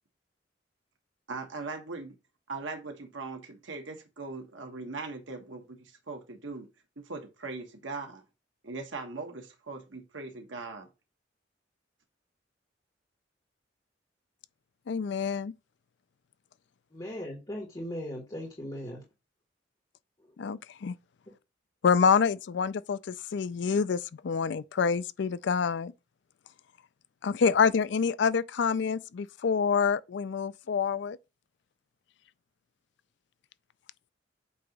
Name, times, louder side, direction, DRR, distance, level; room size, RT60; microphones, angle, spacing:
voice 1, 1.3-2.1 2.5-6.7 7.0-8.2 8.6-10.9, right 3 dB, 90° right, 1.2 m, -40 dB
voice 2, 14.9-15.5 20.4-20.9 21.8-25.9 27.2-31.2, left 6 dB, 65° left, 0.4 m, -27 dB
voice 3, 16.9-19.0, equal, 25° left, 1.8 m, -38 dB
8.4 x 2.9 x 5.3 m
head